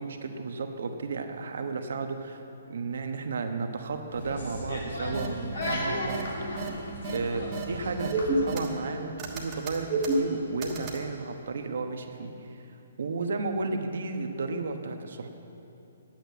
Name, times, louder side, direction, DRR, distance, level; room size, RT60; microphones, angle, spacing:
voice 1, 0.0-2.4 2.7-6.3 7.1-12.7 13.0-15.3, right 4 dB, 70° right, 5 dB, 1.1 m, -33 dB
sound 1, 4.1-8.4, left 1 dB, 70° left, 3.1 m, -35 dB
sound 2, 5.1-5.3 5.6-5.7 6.1-6.2 6.6-6.7 7.0-7.2 7.5-7.6 8.0-8.9 9.2-11.0, right 4 dB, 20° right, 1.3 m, -30 dB
8.9 x 7.9 x 9.2 m, 2.9 s
hypercardioid pair, 165°, 0 cm